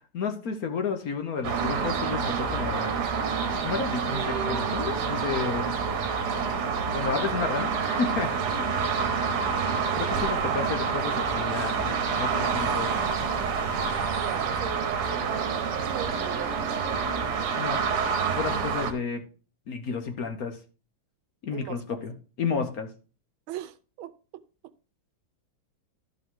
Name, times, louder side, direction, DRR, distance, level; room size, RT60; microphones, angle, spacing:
voice 1, 0.1-3.0 3.6-5.8 6.9-8.3 9.9-12.9 17.6-17.8 18.3-19.2 19.7-20.6 21.4-22.9, left 5 dB, 55° left, 1.2 m, -31 dB
sound 1, 1.4-18.9, right 5 dB, 60° right, 1.5 m, -27 dB
voice 2, 14.1-16.6 21.5-22.0 23.5-24.1, right 12 dB, 85° right, 1.5 m, -39 dB
12.5 x 5.4 x 3.7 m
omnidirectional pair, 2.2 m